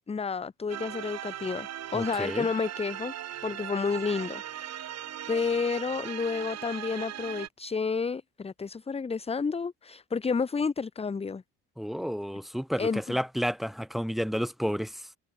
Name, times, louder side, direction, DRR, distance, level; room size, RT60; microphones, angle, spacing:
voice 1, 0.1-3.1 3.4-4.9 5.3-11.4 12.8-13.2, left 5 dB, 15° left, 1.1 m, -30 dB
sound 1, 0.7-7.5, right 11 dB, 45° right, 1.9 m, -38 dB
voice 2, 1.9-2.5 11.8-15.1, equal, ahead, 2.7 m, -31 dB
cardioid pair, 135°, 37 cm